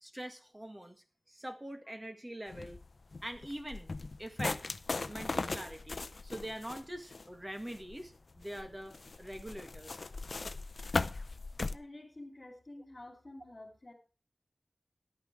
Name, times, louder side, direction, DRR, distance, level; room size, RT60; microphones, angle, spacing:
voice 1, 0.0-1.0 1.3-2.8 3.2-3.9 4.2-4.6 5.1-9.9, right 1 dB, 20° right, 6 dB, 1.8 m, -43 dB
sound 1, 2.5-11.8, left 3 dB, 70° left, 0.6 m, -39 dB
voice 2, 11.7-13.9, left 1 dB, 40° left, -3 dB, 3.4 m, -50 dB
11.5 x 8.9 x 4.9 m, 0.35 s
wide cardioid pair, 65°, 0 cm